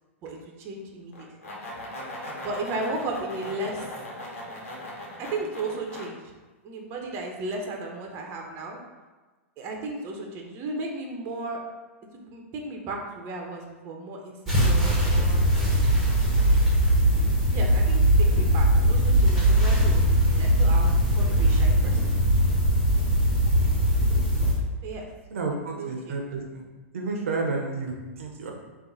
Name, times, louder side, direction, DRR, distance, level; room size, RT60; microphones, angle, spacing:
voice 1, 0.2-1.3 2.4-3.9 5.2-6.2 6.6-8.8 9.6-11.6 12.1-14.4 14.6-15.4 17.5-22.1 24.8-25.1 25.8-26.2, right 2 dB, 35° right, 1 dB, 0.8 m, -35 dB
sound 1, 1.1-6.1, left 1 dB, 80° left, 1.2 m, -39 dB
sound 2, 14.5-24.5, right 1 dB, ahead, 1.4 m, -20 dB
voice 2, 25.3-26.7 26.9-28.5, right 3 dB, 75° right, 1 dB, 0.7 m, -31 dB
3.8 x 2.6 x 3.9 m, 1.3 s
hypercardioid pair, 120°, 7 cm